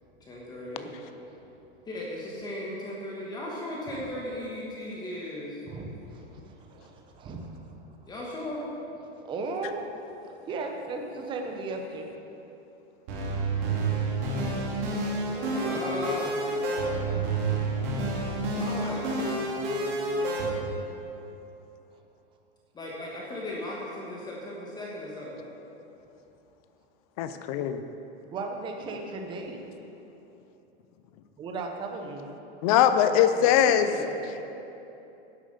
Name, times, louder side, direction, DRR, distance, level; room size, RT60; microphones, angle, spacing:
voice 1, 0.2-0.9 1.9-5.6 8.0-8.7 15.3-16.3 18.5-19.1 22.7-25.5 33.2-34.4, left 1 dB, 10° left, -4 dB, 1.3 m, -37 dB
voice 2, 5.7-7.8 9.1-9.9 10.2-12.1 17.0-17.2 28.3-29.6 31.4-32.3, right 3 dB, 15° right, 3 dB, 0.7 m, -36 dB
sound 1, 13.1-20.5, right 2 dB, 45° right, 2.4 m, -29 dB
voice 3, 27.2-27.8 32.6-33.9, left 10 dB, 35° left, 9 dB, 0.6 m, -21 dB
11.0 x 7.4 x 6.7 m, 3.0 s
supercardioid pair, 155°, 33 cm